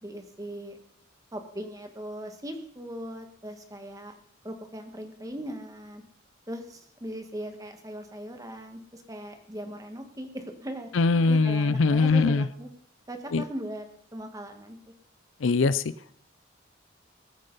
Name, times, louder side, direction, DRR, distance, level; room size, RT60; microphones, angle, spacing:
voice 1, 0.0-0.8 1.3-4.1 4.4-6.0 6.5-10.9 11.3-12.7 13.1-13.9 14.1-14.8, right 1 dB, 15° right, 5 dB, 1.5 m, -39 dB
voice 2, 10.9-12.4 13.3-13.4 15.4-15.8, left 3 dB, 75° left, 15 dB, 0.5 m, -22 dB
20.5 x 9.0 x 4.0 m, 0.68 s
head